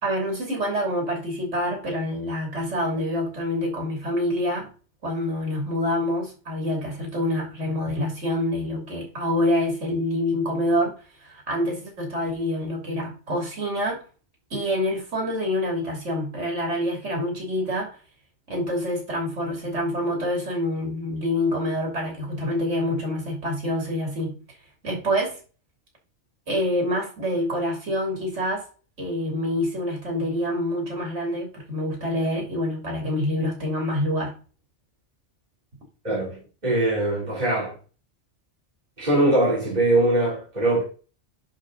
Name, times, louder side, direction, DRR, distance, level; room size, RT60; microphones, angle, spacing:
voice 1, 0.0-4.7 5.0-10.9 11.2-14.0 14.5-18.0 18.5-24.4 24.8-25.4 26.5-28.6 29.0-34.3, left 1 dB, 90° right, 3.2 m, -26 dB
voice 2, 36.0-37.7 39.0-40.8, right 2 dB, 35° right, 3.5 m, -22 dB
10.5 x 4.2 x 3.9 m
omnidirectional pair, 1.2 m